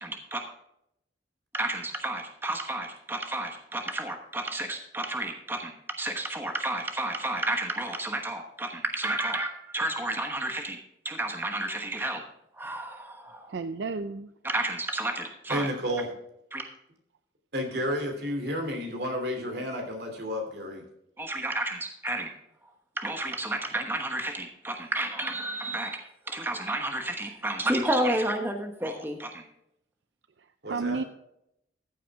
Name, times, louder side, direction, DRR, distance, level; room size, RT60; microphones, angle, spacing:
voice 1, 0.0-0.4 1.5-10.8 11.0-12.2 12.5-13.5 14.4-15.7 16.5-16.6 21.2-22.3 23.0-29.4, right 1 dB, 10° right, 1.1 m, -31 dB
voice 2, 13.5-14.3 30.7-31.0, right 4 dB, 80° right, 0.5 m, -31 dB
voice 3, 15.5-16.1 17.5-20.8 30.6-31.0, equal, 65° right, 3.0 m, -31 dB
14.5 x 8.6 x 3.6 m
head